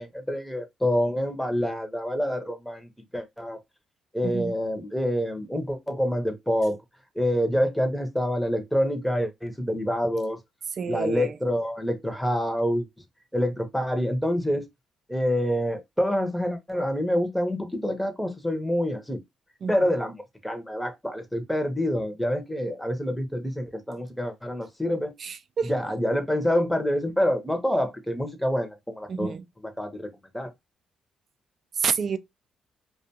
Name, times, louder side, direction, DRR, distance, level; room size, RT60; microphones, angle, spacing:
voice 1, 0.0-3.6 4.1-6.8 7.1-10.4 10.9-12.9 13.3-14.7 15.1-19.2 19.7-20.2 20.4-25.1 25.7-29.3 29.8-30.1 30.3-30.5, equal, 5° left, 0.8 m, -27 dB
voice 2, 4.2-4.5 10.8-11.4 19.6-19.9 25.2-25.7 29.1-29.4 31.8-32.2, right 6 dB, 50° right, 0.4 m, -29 dB
2.4 x 2.3 x 2.8 m
cardioid pair, 90°, 0 cm